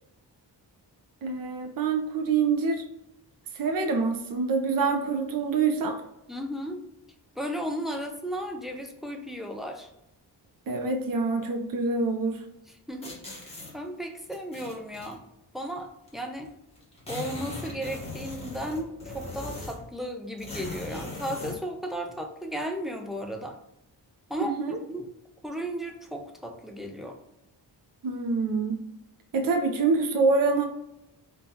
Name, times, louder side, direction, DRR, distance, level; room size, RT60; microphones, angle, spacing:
voice 1, 1.2-2.8 3.6-6.0 10.7-12.4 24.4-24.8 28.0-28.8 29.3-30.7, right 4 dB, 55° right, 5 dB, 0.5 m, -26 dB
voice 2, 6.3-6.8 7.4-9.9 12.7-13.2 13.7-15.2 15.5-16.5 17.1-23.6 24.3-25.1 25.4-27.2, equal, ahead, 3 dB, 0.3 m, -35 dB
sound 1, 13.0-13.7 14.3-15.1 16.1-16.2 16.4-16.5 16.8-19.9 20.4-21.6, left 3 dB, 15° left, 0.9 m, -39 dB
5.2 x 2.2 x 2.7 m, 0.86 s
wide cardioid pair, 155°, 42 cm